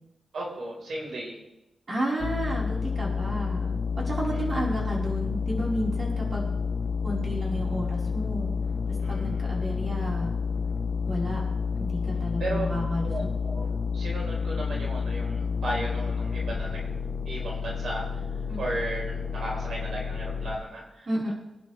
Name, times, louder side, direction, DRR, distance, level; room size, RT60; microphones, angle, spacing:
voice 1, 0.3-1.4 4.3-4.5 9.0-9.4 12.4-12.7 13.0-21.3, right 1 dB, 90° right, -3 dB, 4.9 m, -35 dB
voice 2, 1.9-6.5 7.0-8.5 9.1-10.3 11.1-11.4 11.8-13.1 18.5-18.6 21.1-21.3, equal, 40° right, -4 dB, 5.2 m, -32 dB
sound 1, 2.2-20.6, left 5 dB, 60° left, 1.4 m, -30 dB
25.5 x 10.5 x 3.6 m, 0.90 s
wide cardioid pair, 125°, 0 cm